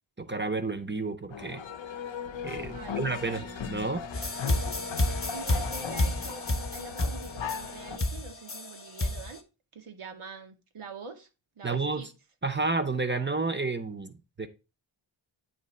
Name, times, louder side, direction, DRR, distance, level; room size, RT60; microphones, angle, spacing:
voice 1, 0.2-1.6 2.4-4.0 11.6-12.1 12.4-14.5, right 3 dB, 25° right, 0.6 m, -31 dB
sound 1, 1.3-8.0, left 6 dB, 65° left, 0.6 m, -37 dB
voice 2, 2.7-3.6 5.3-9.4 9.7-11.3 11.6-12.1, right 5 dB, 85° right, 1.0 m, -45 dB
sound 2, 4.1-9.3, left 1 dB, 25° left, 0.8 m, -30 dB
8.4 x 2.9 x 4.1 m
wide cardioid pair, 70°, 49 cm